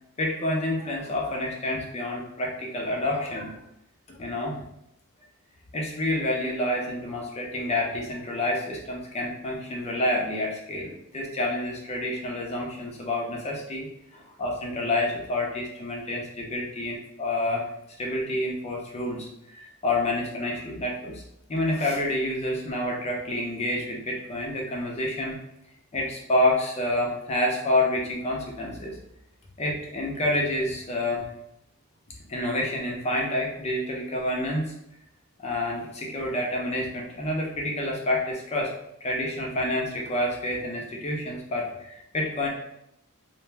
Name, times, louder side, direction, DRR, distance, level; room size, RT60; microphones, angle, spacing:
voice 1, 0.2-3.6 4.1-4.6 5.7-17.7 18.0-21.2 21.5-25.4 25.9-29.0 29.6-31.3 32.3-34.7 35.4-38.7 39.0-42.5, left 1 dB, 30° left, -1 dB, 0.5 m, -28 dB
2.5 x 2.2 x 3.1 m, 0.80 s
head